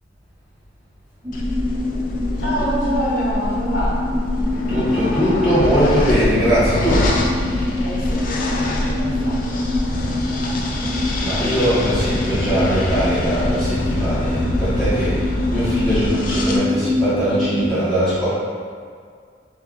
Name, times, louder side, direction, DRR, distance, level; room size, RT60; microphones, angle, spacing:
sound 1, 1.2-17.7, left 2 dB, 20° right, 0.4 m, -26 dB
sound 2, 1.3-16.6, left 1 dB, 45° left, 0.4 m, -24 dB
voice 1, 2.4-4.1 7.8-10.7, equal, 85° left, -7 dB, 1.2 m, -27 dB
voice 2, 4.7-7.1 11.2-18.3, equal, 5° left, -15 dB, 1.4 m, -21 dB
3.1 x 2.8 x 3.8 m, 2.1 s
head